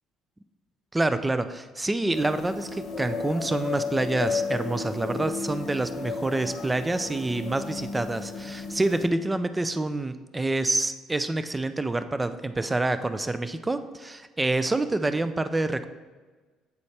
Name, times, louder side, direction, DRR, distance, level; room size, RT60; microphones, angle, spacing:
voice 1, 0.9-15.9, right 2 dB, 15° right, 11 dB, 0.3 m, -27 dB
sound 1, 2.1-9.1, left 5 dB, 55° left, 0.9 m, -33 dB
8.2 x 4.2 x 3.3 m, 1.3 s
cardioid pair, 100°, 0 cm